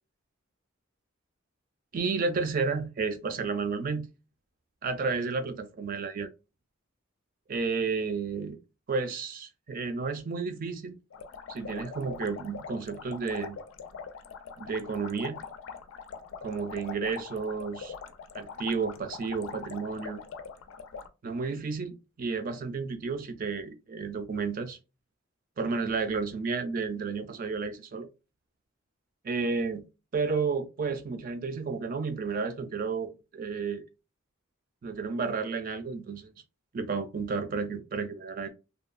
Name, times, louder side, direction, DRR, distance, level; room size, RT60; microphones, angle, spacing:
voice 1, 1.9-4.1 4.8-6.3 7.5-8.6 8.9-10.9 11.5-13.6 14.6-15.4 16.4-17.9 18.3-20.2 21.2-24.8 25.6-28.1 29.2-29.9 30.1-33.8 34.8-36.3 36.7-38.5, right 4 dB, 40° right, 0.4 m, -32 dB
sound 1, 11.1-21.1, left 6 dB, 75° left, 0.4 m, -42 dB
2.8 x 2.2 x 2.4 m
head